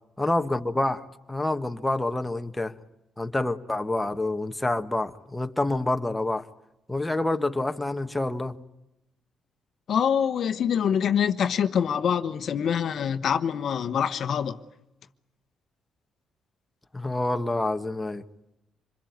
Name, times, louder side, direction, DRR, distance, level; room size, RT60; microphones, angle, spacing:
voice 1, 0.2-1.0 1.3-2.7 3.2-6.5 6.9-8.6 16.9-18.2, left 2 dB, 10° left, 1.5 m, -27 dB
voice 2, 9.9-14.6, left 8 dB, 60° left, 1.1 m, -25 dB
26.0 x 22.0 x 9.5 m
cardioid pair, 90°, 0 cm